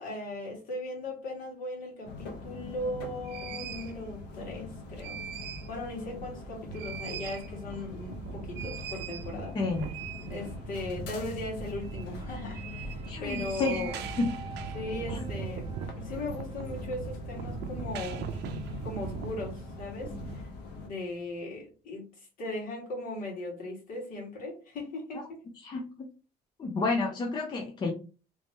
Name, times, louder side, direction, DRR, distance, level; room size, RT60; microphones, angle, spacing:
voice 1, 0.0-5.2 5.7-9.6 10.3-14.0 14.7-15.7 15.9-18.3 18.8-20.4 20.8-25.4, left 2 dB, 55° left, 1.8 m, -38 dB
sound 1, 2.0-20.9, left 3 dB, 80° left, 0.8 m, -43 dB
sound 2, 2.6-2.7 3.3-3.9 4.8-5.8 6.1-6.2 6.5-20.4, right 7 dB, 80° right, 0.5 m, -41 dB
voice 2, 9.5-9.9 13.1-13.9 14.2-14.3 15.1-15.2 25.1-25.2 25.6-25.8 26.6-27.9, left 3 dB, 25° left, 0.5 m, -30 dB
sound 3, 10.4-21.3, right 2 dB, 30° right, 0.7 m, -45 dB
3.1 x 2.8 x 3.4 m
cardioid pair, 175°, 17 cm